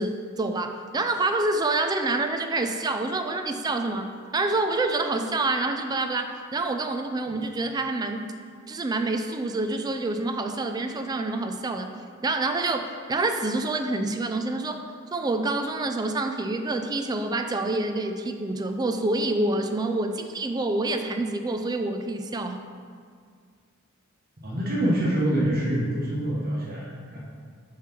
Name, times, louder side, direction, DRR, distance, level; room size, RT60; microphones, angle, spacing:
voice 1, 0.0-8.3 8.7-11.9 12.2-14.8 15.1-22.6, right 2 dB, 20° right, 6 dB, 0.3 m, -27 dB
voice 2, 24.4-27.2, right 1 dB, 45° right, -5 dB, 1.1 m, -25 dB
6.7 x 3.2 x 5.9 m, 2.1 s
head